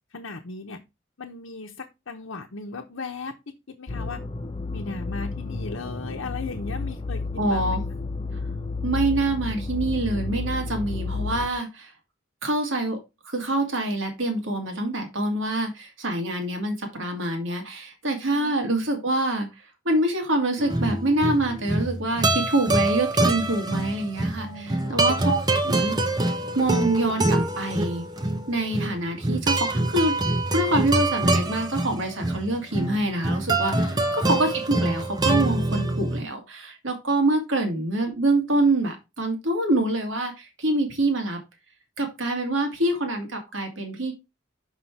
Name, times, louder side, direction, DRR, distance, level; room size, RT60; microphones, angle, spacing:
voice 1, 0.1-0.8 1.2-4.2 4.7-7.8 18.3-18.7 18.9-19.0 24.3-25.3 33.7-33.9, left 3 dB, 85° left, 2 dB, 0.9 m, -37 dB
sound 1, 3.9-11.5, left 3 dB, 25° left, 0.4 m, -31 dB
voice 2, 7.4-7.8 8.8-11.9 12.4-13.0 13.2-25.4 25.6-25.9 26.5-28.0 28.5-30.2 30.5-41.4 42.0-44.1, right 2 dB, 75° right, 4 dB, 1.9 m, -25 dB
sound 2, 20.6-36.2, right 2 dB, 20° right, 0.8 m, -25 dB
5.9 x 5.7 x 4.5 m, 0.24 s
head